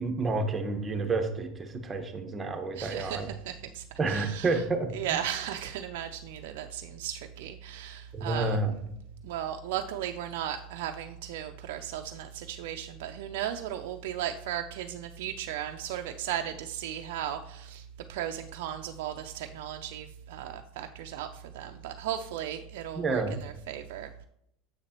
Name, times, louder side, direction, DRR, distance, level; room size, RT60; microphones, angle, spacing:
voice 1, 0.0-3.3 4.0-4.9 8.1-8.7 22.9-23.4, right 3 dB, 25° right, 5 dB, 1.2 m, -29 dB
voice 2, 2.8-4.6 4.9-8.6 9.2-24.2, right 10 dB, 75° right, 5 dB, 0.4 m, -36 dB
7.3 x 6.5 x 3.0 m, 0.74 s
hypercardioid pair, 95°, 0 cm